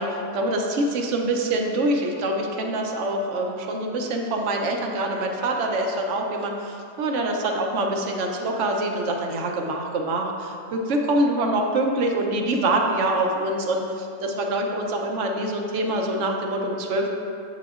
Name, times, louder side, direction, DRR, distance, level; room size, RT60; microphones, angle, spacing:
voice 1, 0.0-17.1, right 1 dB, 60° right, 2 dB, 0.8 m, -25 dB
7.9 x 7.6 x 2.4 m, 2.6 s
omnidirectional pair, 1.7 m